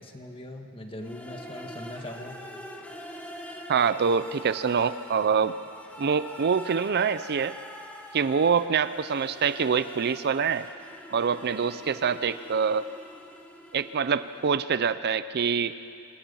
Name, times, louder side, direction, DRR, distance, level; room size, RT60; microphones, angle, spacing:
voice 1, 0.0-2.4, left 1 dB, 25° left, 4 dB, 1.7 m, -40 dB
sound 1, 1.0-14.9, equal, 5° left, 1.5 m, -45 dB
voice 2, 3.7-5.6 6.0-7.5 8.1-10.7 11.1-12.8 13.7-15.7, right 6 dB, 50° right, 13 dB, 0.5 m, -25 dB
26.5 x 20.5 x 5.6 m, 2.4 s
head